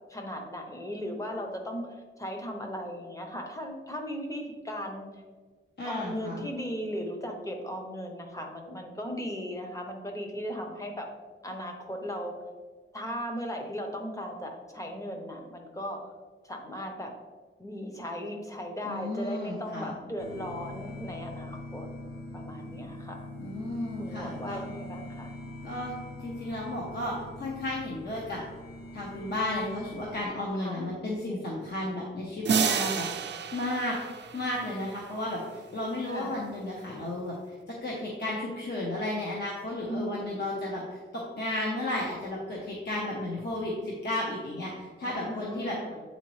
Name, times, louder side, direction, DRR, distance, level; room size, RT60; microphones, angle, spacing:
voice 1, 0.1-1.9 2.2-5.2 5.8-11.1 11.4-12.3 12.9-16.1 16.4-17.1 17.6-21.9 22.3-23.3 24.0-25.3 30.6-30.9 36.1-36.4 39.9-40.4 45.0-46.0, equal, 15° left, 2 dB, 0.8 m, -37 dB
voice 2, 5.8-6.5 18.8-19.9 23.4-24.6 25.6-25.9 26.2-28.4 28.9-33.9 34.3-37.3 37.7-45.8, left 1 dB, 50° left, -4 dB, 1.0 m, -33 dB
sound 1, 20.2-30.2, left 1 dB, 90° left, 0.6 m, -42 dB
sound 2, 32.4-35.2, right 6 dB, 55° right, 0.4 m, -30 dB
8.1 x 4.0 x 3.1 m, 1.4 s
wide cardioid pair, 140°, 21 cm